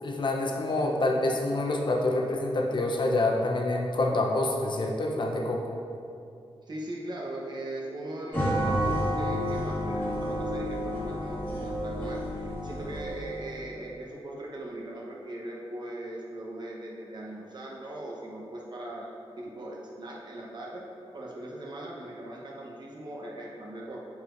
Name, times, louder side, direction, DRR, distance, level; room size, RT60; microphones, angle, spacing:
voice 1, 0.0-5.7, left 2 dB, 50° left, 1 dB, 0.7 m, -27 dB
voice 2, 6.6-20.9 21.1-24.0, right 1 dB, 45° right, -3 dB, 1.0 m, -39 dB
sound 1, 8.3-13.5, equal, 15° left, 1.5 m, -30 dB
8.4 x 4.7 x 2.6 m, 2.5 s
wide cardioid pair, 115°, 10 cm